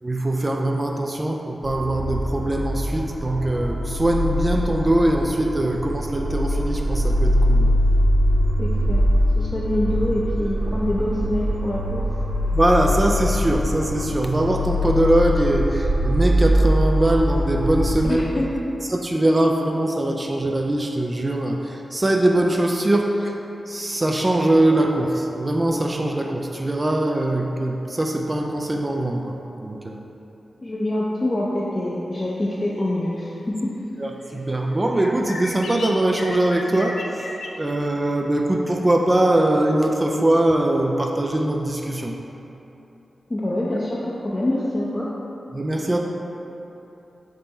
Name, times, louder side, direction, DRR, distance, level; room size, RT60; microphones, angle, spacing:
voice 1, 0.0-7.7 12.5-18.2 18.9-23.3 23.7-30.0 34.0-37.3 37.6-42.2 45.5-46.0, right 1 dB, 30° right, 1 dB, 0.3 m, -22 dB
sound 1, 1.6-18.1, equal, 85° right, 0.5 m, -22 dB
voice 2, 8.6-9.0 9.4-12.1 18.1-18.5 30.6-33.7 43.3-45.1, left 1 dB, 30° left, -6 dB, 0.5 m, -25 dB
sound 2, 32.8-32.9 34.3-34.4 34.7-37.6, left 2 dB, 85° left, 0.3 m, -35 dB
3.6 x 2.8 x 4.2 m, 3.0 s
cardioid pair, 50°, 0 cm